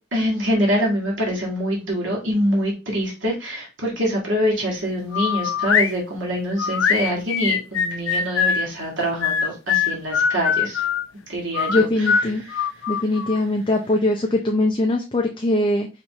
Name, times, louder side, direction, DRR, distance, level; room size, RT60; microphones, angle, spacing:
voice 1, 0.1-10.9 11.3-12.7, equal, 75° right, -2 dB, 1.9 m, -25 dB
sound 1, 5.1-5.9 6.6-8.7 9.2-11.0 11.5-13.4, left 7 dB, 85° left, 0.5 m, -22 dB
voice 2, 11.7-12.4 12.9-15.9, left 2 dB, 25° left, 1 dB, 0.5 m, -21 dB
5.1 x 3.2 x 3.0 m, 0.28 s
head